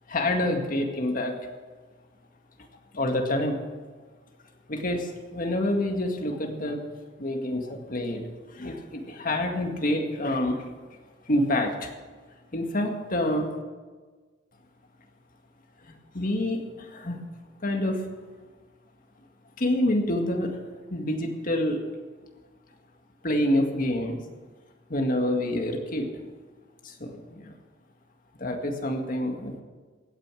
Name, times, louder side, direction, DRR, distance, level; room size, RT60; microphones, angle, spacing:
voice 1, 0.1-1.3 2.9-3.6 4.7-5.1 5.3-6.8 7.2-8.2 8.5-10.6 11.3-11.9 12.5-13.5 16.1-16.6 16.9-17.2 17.6-18.0 19.6-20.5 20.9-21.8 23.2-24.2 24.9-26.1 27.0-27.5 28.4-29.6, left 1 dB, 50° left, 3 dB, 1.9 m, -27 dB
16.0 x 9.3 x 6.3 m, 1.4 s
head